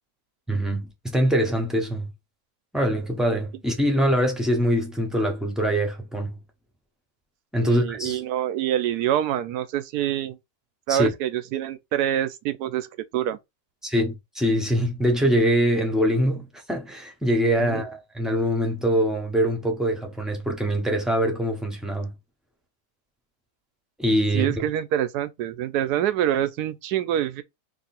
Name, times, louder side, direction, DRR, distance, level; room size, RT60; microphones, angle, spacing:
voice 1, 0.5-2.1 2.7-6.4 7.5-8.2 10.9-11.1 13.8-22.1 24.0-24.6, equal, ahead, 0.6 m, -23 dB
voice 2, 7.6-10.4 10.9-12.9 13.1-13.4 17.6-17.9 24.3-27.4, right 11 dB, 75° right, 1.1 m, -26 dB
2.9 x 2.7 x 4.1 m
omnidirectional pair, 1.8 m